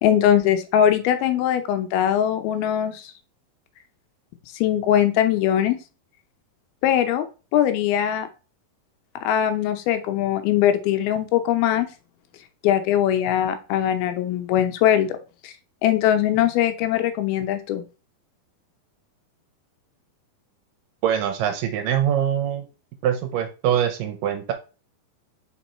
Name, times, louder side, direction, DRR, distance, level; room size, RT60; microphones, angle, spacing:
voice 1, 0.0-3.1 4.5-5.8 6.8-7.2 7.5-8.3 9.2-11.9 12.6-15.2 15.4-15.5 15.8-17.8, left 10 dB, 85° left, 8 dB, 2.7 m, -21 dB
voice 2, 21.0-22.6 23.0-24.5, right 9 dB, 75° right, 6 dB, 2.1 m, -23 dB
5.1 x 4.4 x 4.2 m, 0.33 s
omnidirectional pair, 4.3 m